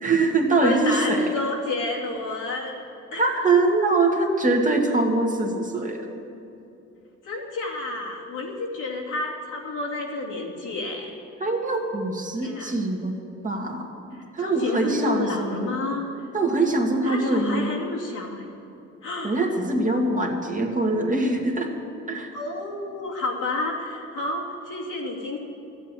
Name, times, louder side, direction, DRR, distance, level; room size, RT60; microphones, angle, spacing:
voice 1, 0.0-1.3 3.2-6.1 11.4-13.2 13.4-13.9 14.3-15.7 16.3-17.7 19.2-21.7 22.1-22.3, right 2 dB, 25° right, 1 dB, 1.8 m, -23 dB
voice 2, 0.6-2.8 3.1-3.2 7.2-11.1 12.4-12.7 14.4-16.0 17.0-18.4 19.0-19.4 22.3-25.4, left 2 dB, 80° left, -3 dB, 2.6 m, -30 dB
13.0 x 8.2 x 9.0 m, 2.8 s
cardioid pair, 90°, 30 cm